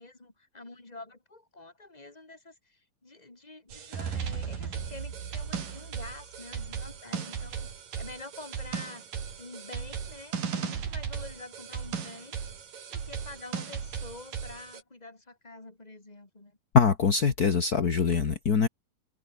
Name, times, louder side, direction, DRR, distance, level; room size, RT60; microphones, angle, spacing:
voice 1, 0.0-7.7 8.0-9.1 9.4-12.4 12.9-16.6, left 2 dB, 10° left, 3.1 m, -47 dB
sound 1, 3.7-14.8, right 7 dB, 70° right, 4.9 m, -36 dB
voice 2, 16.7-18.7, left 6 dB, 40° left, 1.4 m, -23 dB
omnidirectional pair, 4.1 m